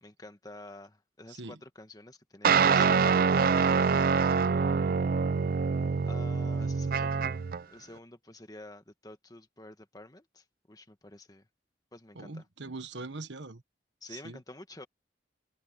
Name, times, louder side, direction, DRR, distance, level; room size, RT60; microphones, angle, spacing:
voice 1, 0.0-4.4 6.0-7.4 7.7-11.5 11.9-12.4 14.0-14.9, left 2 dB, 20° left, 1.5 m, -50 dB
sound 1, 2.4-7.6, right 5 dB, 50° right, 0.4 m, -25 dB
voice 2, 12.1-13.6 14.1-14.4, right 3 dB, 85° right, 1.5 m, -42 dB
open air
head